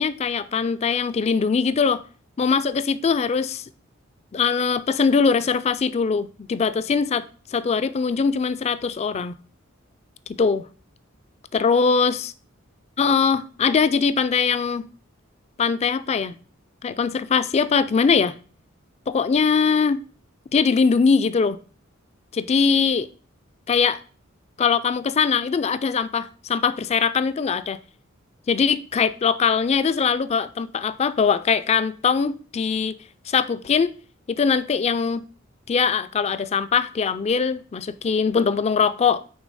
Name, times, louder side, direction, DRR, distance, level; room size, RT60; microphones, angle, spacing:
voice 1, 0.0-2.0 2.4-3.6 4.3-7.2 7.5-9.3 10.4-10.7 11.5-12.2 13.0-14.9 15.6-16.4 16.8-18.4 19.1-20.0 20.5-21.6 22.3-23.1 23.7-24.0 24.6-27.8 28.5-33.0 33.3-33.9 34.3-35.2 35.7-39.2, left 5 dB, 30° left, 0.3 m, -21 dB
6.1 x 3.3 x 5.4 m
head